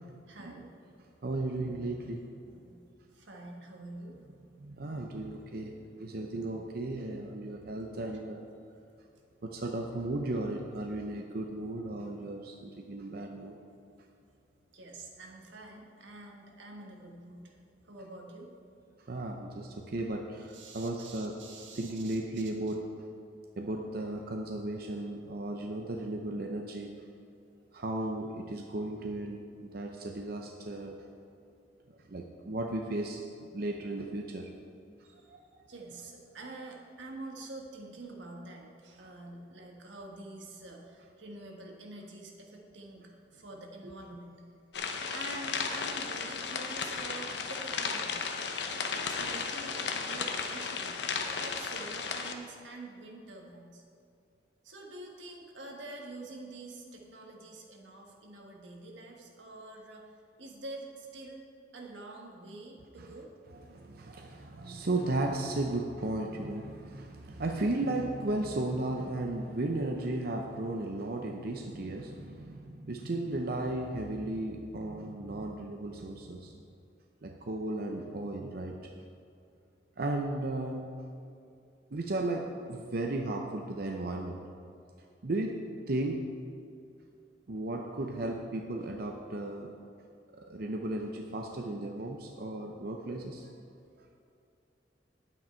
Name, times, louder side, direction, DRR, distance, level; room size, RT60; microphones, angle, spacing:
voice 1, 0.3-0.7 2.5-2.8 3.1-4.2 14.7-17.6 17.8-18.5 20.5-22.7 35.0-35.3 35.7-44.4 45.1-48.2 48.7-51.0 51.4-53.8 54.6-61.4 61.7-63.3, right 2 dB, 90° right, 0 dB, 1.5 m, -46 dB
voice 2, 1.2-2.2 4.6-5.7 6.0-8.4 9.4-13.5 19.1-21.4 21.7-22.8 23.6-26.9 27.7-31.0 32.1-34.5 35.3-35.6 63.0-63.1 63.7-76.5 77.2-78.9 80.0-80.9 81.9-84.4 85.2-85.6 85.9-86.3 87.5-89.7 90.3-93.5, right 2 dB, 55° right, 2 dB, 0.7 m, -35 dB
sound 1, 44.7-52.3, left 5 dB, 65° left, 0.8 m, -35 dB
9.9 x 8.8 x 4.5 m, 2.5 s
head